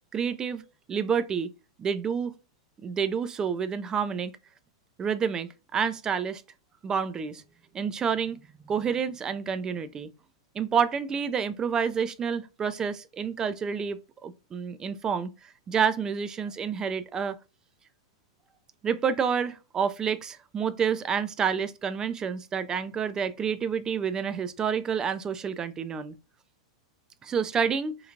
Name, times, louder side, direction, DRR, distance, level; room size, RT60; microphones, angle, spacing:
voice 1, 0.1-0.6 0.9-1.5 1.8-2.3 2.8-4.3 5.0-6.4 6.8-7.4 7.7-8.4 8.7-10.1 10.5-15.3 15.7-17.4 18.8-26.1 27.2-28.0, right 6 dB, 20° right, 0.3 m, -28 dB
3.0 x 2.4 x 2.4 m
hypercardioid pair, 115°, 3 cm